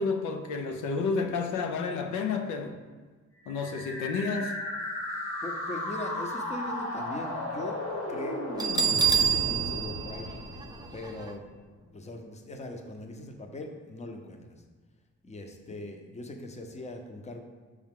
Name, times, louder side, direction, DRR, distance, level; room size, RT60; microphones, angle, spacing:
voice 1, 0.0-2.8 3.5-4.6, left 4 dB, 85° left, 5 dB, 0.6 m, -30 dB
sound 1, 3.4-11.4, left 1 dB, 65° left, 1.6 m, -35 dB
voice 2, 5.4-7.8 8.1-8.5 8.9-10.3 10.9-11.5 11.9-14.6 15.2-17.4, left 2 dB, 20° left, 4 dB, 0.7 m, -40 dB
Bell, 8.6-11.3, right 7 dB, 15° right, 0.4 m, -27 dB
5.3 x 4.8 x 3.7 m, 1.4 s
cardioid pair, 90°, 30 cm